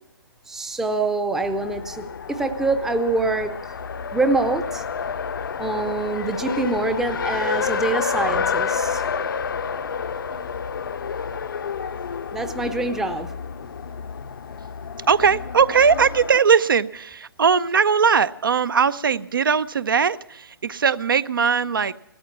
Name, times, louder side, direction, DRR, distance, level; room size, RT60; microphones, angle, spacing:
voice 1, 0.5-3.8 4.1-4.8 5.6-9.0 12.3-13.3, right 2 dB, 5° right, 9 dB, 0.6 m, -25 dB
Race car auto racing, 1.4-16.4, left 6 dB, 55° left, 0.7 m, -29 dB
voice 2, 15.1-21.9, right 6 dB, 60° right, 16 dB, 0.6 m, -19 dB
17.5 x 13.0 x 6.0 m, 0.85 s
figure-of-eight pair, 135°, 13 cm